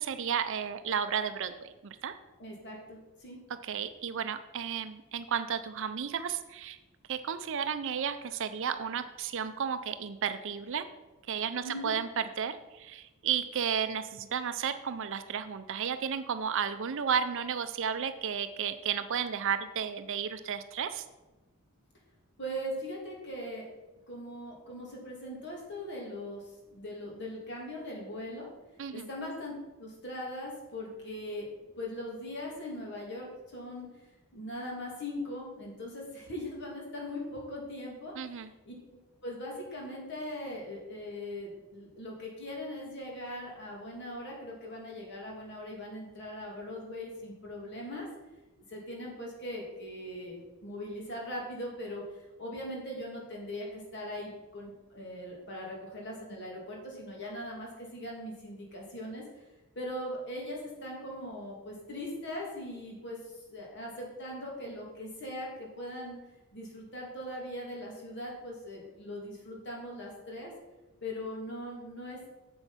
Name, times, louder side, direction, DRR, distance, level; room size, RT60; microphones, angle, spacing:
voice 1, 0.0-2.2 3.6-6.8 7.1-10.9 11.3-21.0 28.8-29.1 38.2-38.5, right 7 dB, 60° right, 10 dB, 0.5 m, -33 dB
voice 2, 2.4-3.4 11.6-11.9 22.4-23.7 24.1-28.5 28.9-31.5 31.8-33.9 34.3-38.7 39.2-48.1 48.7-59.4 59.7-66.2 66.5-70.5 71.0-72.3, left 1 dB, 50° left, -2 dB, 2.8 m, -40 dB
7.9 x 7.1 x 5.7 m, 1.1 s
head